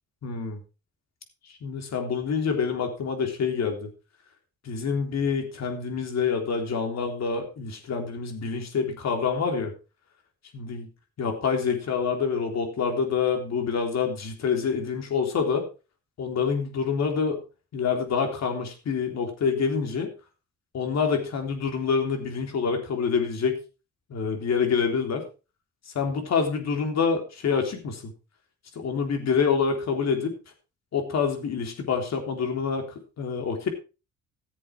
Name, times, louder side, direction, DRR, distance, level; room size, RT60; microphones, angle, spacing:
voice 1, 0.2-0.6 1.5-3.9 4.6-9.7 10.5-10.9 11.2-15.7 16.2-17.4 17.7-20.1 20.7-23.6 24.1-25.3 25.9-28.1 28.8-30.3 30.9-32.9 33.2-33.7, left 6 dB, 60° left, 4 dB, 3.6 m, -26 dB
15.5 x 7.8 x 4.5 m, 0.32 s
cardioid pair, 90°, 30 cm